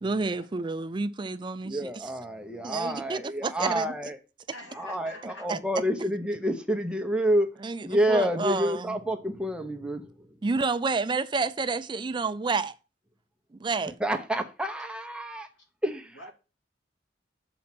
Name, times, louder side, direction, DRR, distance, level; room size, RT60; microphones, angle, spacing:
voice 1, 0.0-2.1 2.6-3.9 5.5-5.6 7.6-9.0 10.4-12.7 13.5-14.0, right 4 dB, 25° right, 0.4 m, -29 dB
voice 2, 1.6-4.2 4.7-7.5 7.8-10.3 14.0-15.5 15.8-16.2, equal, 5° right, 0.8 m, -28 dB
voice 3, 4.5-5.5 15.6-15.7 16.1-16.3, left 1 dB, 90° left, 2.5 m, -46 dB
7.1 x 4.3 x 6.0 m
head